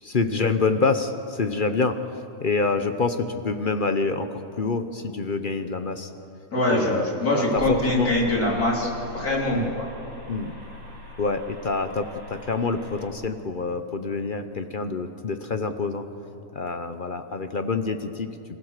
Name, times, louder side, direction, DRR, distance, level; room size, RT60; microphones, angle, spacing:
voice 1, 0.0-2.0 2.4-6.1 6.7-8.1 9.5-9.7 10.3-10.5 11.2-16.0 16.5-18.3, left 4 dB, 45° left, 8 dB, 0.8 m, -26 dB
voice 2, 6.5-8.9 9.1-9.9, left 1 dB, 80° left, -3 dB, 4.0 m, -23 dB
sound 1, 7.6-13.1, left 2 dB, 35° right, 3.3 m, -41 dB
27.5 x 15.5 x 6.6 m, 2.9 s
omnidirectional pair, 1.6 m